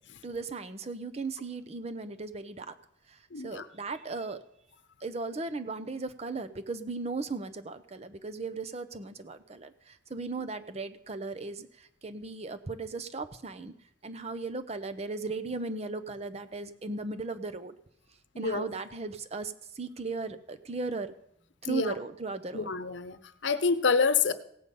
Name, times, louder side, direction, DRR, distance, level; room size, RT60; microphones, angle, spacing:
voice 1, 0.2-2.7 3.1-4.4 5.0-13.7 14.0-17.8 18.4-21.1 21.6-22.7, right 3 dB, 35° right, 10 dB, 0.7 m, -37 dB
voice 2, 3.3-3.7 18.3-18.7 21.6-21.9 22.5-24.3, left 5 dB, 85° left, 12 dB, 0.8 m, -27 dB
16.5 x 8.2 x 5.4 m, 0.72 s
head